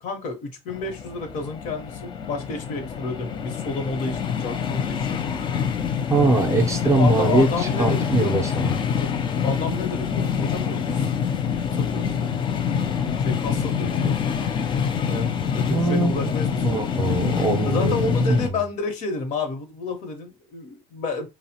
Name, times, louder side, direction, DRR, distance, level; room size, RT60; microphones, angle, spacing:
voice 1, 0.0-5.1 6.8-9.2 9.4-11.1 11.5-12.4 13.2-14.2 15.1-16.9 17.6-21.3, left 3 dB, 65° left, 0.9 m, -30 dB
sound 1, 0.7-18.5, left 7 dB, 35° left, 0.4 m, -26 dB
voice 2, 6.1-8.8 15.7-16.3 16.6-18.6, right 2 dB, 20° right, 0.5 m, -22 dB
2.8 x 2.0 x 2.8 m
cardioid pair, 120°, 14 cm